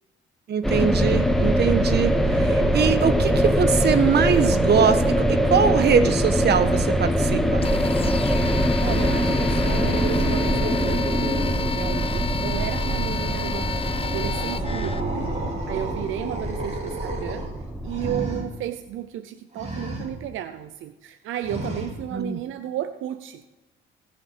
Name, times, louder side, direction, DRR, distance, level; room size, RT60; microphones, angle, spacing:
voice 1, 0.5-7.6 22.1-22.4, right 6 dB, 55° right, 10 dB, 1.2 m, -22 dB
sound 1, 0.6-18.1, equal, ahead, 1.3 m, -23 dB
sound 2, 7.6-15.0, left 5 dB, 30° left, 0.8 m, -32 dB
sound 3, 8.3-12.1 12.4-18.4 19.5-20.1 21.4-21.9, right 1 dB, 35° right, 3.8 m, -32 dB
voice 2, 8.8-11.1 11.7-17.5 17.8-23.4, right 11 dB, 85° right, 10 dB, 0.6 m, -33 dB
19.0 x 6.7 x 4.9 m, 1.1 s
cardioid pair, 90°, 20 cm